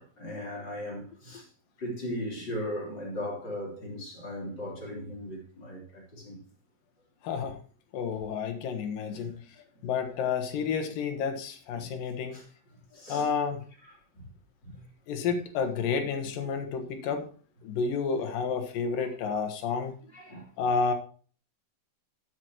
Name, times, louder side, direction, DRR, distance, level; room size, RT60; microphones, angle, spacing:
voice 1, 0.0-1.5 1.8-6.4 9.1-9.3 11.7-11.9 12.3-12.4 12.9-13.3 14.1-14.3 14.6-14.8 19.0-19.2 20.1-20.5, equal, 30° left, 3.9 m, -38 dB
voice 2, 7.2-7.6 7.9-9.4 9.8-12.4 13.1-13.6 15.1-17.3 17.6-19.9 20.6-20.9, left 5 dB, 80° left, 3.0 m, -30 dB
12.5 x 7.9 x 3.0 m
omnidirectional pair, 3.9 m